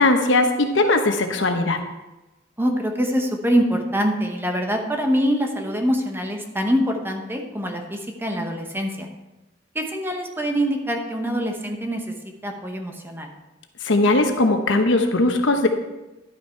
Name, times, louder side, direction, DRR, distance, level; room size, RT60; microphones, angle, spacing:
voice 1, 0.0-1.8 13.8-15.7, left 2 dB, 75° left, 5 dB, 1.0 m, -19 dB
voice 2, 2.6-9.1 9.7-12.1 12.4-13.3, equal, 10° right, 3 dB, 0.9 m, -24 dB
11.0 x 5.9 x 4.5 m, 1.0 s
head